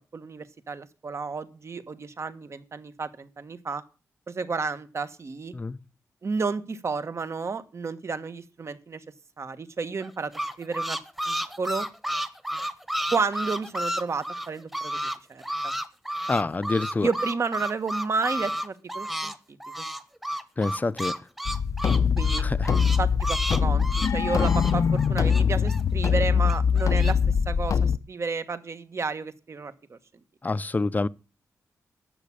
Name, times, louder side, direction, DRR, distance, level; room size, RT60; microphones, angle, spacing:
voice 1, 0.1-3.8 4.3-5.5 6.2-9.0 9.4-11.0 11.3-11.9 13.1-15.0 15.3-15.7 17.0-19.3 19.8-19.9 22.2-22.4 23.0-27.2 27.5-30.0, right 4 dB, 50° right, 1.3 m, -31 dB
sound 1, 10.0-15.2 15.4-19.4 19.6-26.1 26.5-27.1, equal, 5° right, 1.2 m, -31 dB
voice 2, 16.3-17.1 20.6-21.2 22.4-22.7 30.4-31.1, left 3 dB, 30° left, 0.6 m, -27 dB
sound 2, 21.4-28.0, left 6 dB, 70° left, 0.7 m, -23 dB
11.5 x 7.5 x 8.5 m
wide cardioid pair, 90°, 6 cm